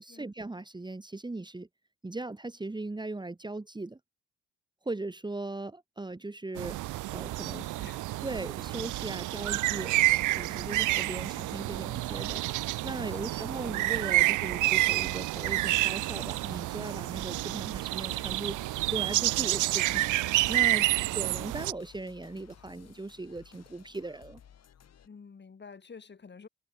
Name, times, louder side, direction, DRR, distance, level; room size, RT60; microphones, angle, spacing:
voice 1, 0.0-1.7 2.0-4.0 4.8-7.6 8.2-9.9 10.3-12.4 12.8-24.4, right 2 dB, 15° right, 2.2 m, -38 dB
sound 1, 6.6-21.7, right 18 dB, 85° right, 0.7 m, -29 dB
sound 2, 6.9-25.1, left 9 dB, 55° left, 3.6 m, -57 dB
voice 2, 7.5-8.2 13.1-13.6 25.0-26.5, left 5 dB, 35° left, 5.6 m, -50 dB
cardioid pair, 90°, 30 cm